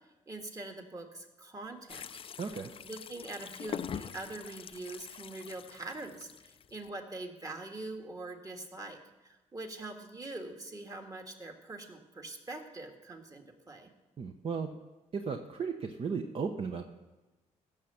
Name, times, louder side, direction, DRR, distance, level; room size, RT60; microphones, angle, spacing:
voice 1, 0.3-2.1 2.8-9.0 9.2-13.9, right 2 dB, 25° right, 3 dB, 1.8 m, -43 dB
sound 1, 1.9-6.9, left 8 dB, 40° left, 0.4 m, -44 dB
voice 2, 2.4-2.7 14.2-14.7 15.1-16.9, right 5 dB, 45° right, 5 dB, 0.9 m, -35 dB
16.0 x 6.6 x 7.1 m, 1.1 s
cardioid pair, 100°, 14 cm